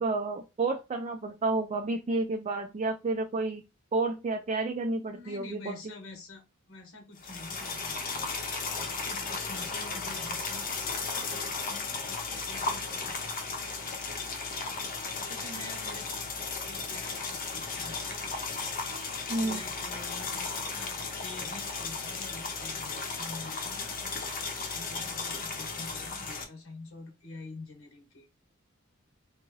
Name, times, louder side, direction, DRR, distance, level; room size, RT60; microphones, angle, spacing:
voice 1, 0.0-3.6 3.9-5.9 19.3-19.6, right 3 dB, 30° right, 0.4 m, -30 dB
voice 2, 5.1-6.4 6.7-13.2 15.1-18.3 19.1-23.9 24.7-28.3, left 2 dB, 75° left, 1.1 m, -47 dB
sound 1, 7.2-26.4, left 4 dB, 45° left, 0.8 m, -35 dB
3.6 x 2.6 x 3.1 m
head